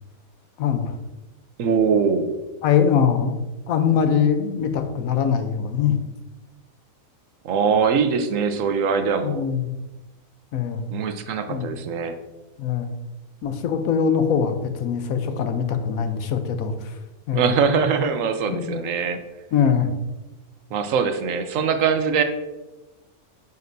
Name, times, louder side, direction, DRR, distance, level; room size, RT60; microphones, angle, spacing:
voice 1, 0.6-1.0 2.6-3.4 3.7-6.0 9.2-9.7 10.5-10.9 11.5-11.7 12.6-12.9 13.4-16.9 17.3-17.5 18.5-18.8 19.5-19.9, left 7 dB, 90° left, 8 dB, 1.2 m, -22 dB
voice 2, 1.6-2.3 7.4-9.4 10.9-12.1 17.3-19.2 20.7-22.2, right 6 dB, 70° right, 8 dB, 1.0 m, -22 dB
9.0 x 5.5 x 2.7 m, 1.1 s
omnidirectional pair, 1.4 m